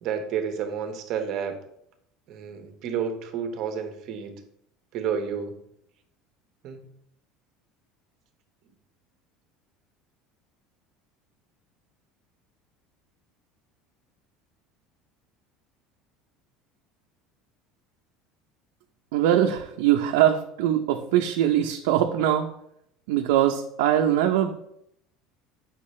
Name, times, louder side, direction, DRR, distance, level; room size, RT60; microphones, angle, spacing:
voice 1, 0.0-1.6 2.3-4.4 4.9-5.5 6.6-6.8, right 7 dB, 45° right, 6 dB, 1.1 m, -30 dB
voice 2, 19.1-22.5 23.1-24.5, right 11 dB, 90° right, 3 dB, 0.6 m, -22 dB
8.5 x 6.0 x 3.2 m, 0.74 s
cardioid pair, 165°, 0 cm